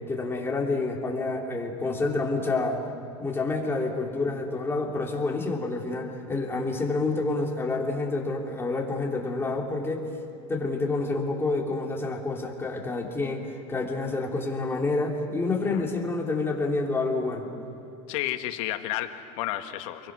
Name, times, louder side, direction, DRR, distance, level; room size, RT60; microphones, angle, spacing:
voice 1, 0.1-2.8 3.2-10.1 10.5-17.5, left 3 dB, 15° left, -1 dB, 3.2 m, -28 dB
voice 2, 18.1-20.1, left 14 dB, 75° left, 7 dB, 1.7 m, -31 dB
29.5 x 22.5 x 6.2 m, 3.0 s
supercardioid pair, 130°, 17 cm